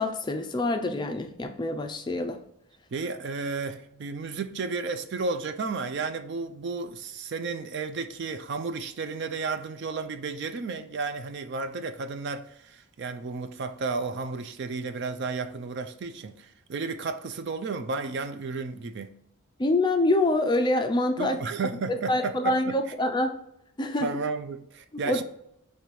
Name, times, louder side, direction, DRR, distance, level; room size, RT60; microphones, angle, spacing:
voice 1, 0.0-2.4 19.6-21.4 22.1-23.3 23.8-24.1 24.9-25.2, left 2 dB, 20° left, 0.4 m, -26 dB
voice 2, 2.9-19.1 21.2-22.7 24.0-25.2, right 4 dB, 50° right, 0.3 m, -33 dB
5.2 x 3.2 x 3.1 m
head